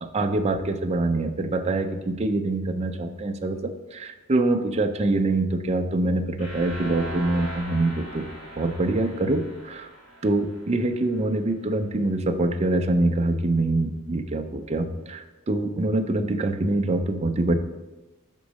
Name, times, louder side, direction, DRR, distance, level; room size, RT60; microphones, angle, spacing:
voice 1, 0.0-8.2 8.6-9.9 10.2-17.5, right 2 dB, 30° right, 6 dB, 0.5 m, -25 dB
sound 1, 6.4-11.3, right 1 dB, 75° left, 2.2 m, -40 dB
6.1 x 3.7 x 6.2 m, 1.1 s
head